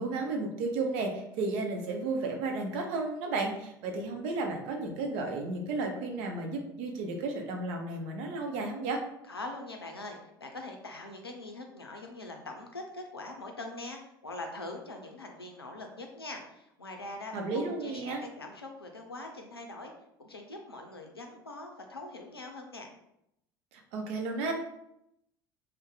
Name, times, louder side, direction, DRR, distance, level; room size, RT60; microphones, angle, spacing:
voice 1, 0.0-9.0 17.3-18.2 23.7-24.5, right 3 dB, 55° right, 3 dB, 0.7 m, -33 dB
voice 2, 9.3-19.9 20.2-22.9, left 2 dB, 90° left, 3 dB, 0.4 m, -43 dB
2.6 x 2.1 x 3.9 m, 0.79 s
figure-of-eight pair, 65°, 12 cm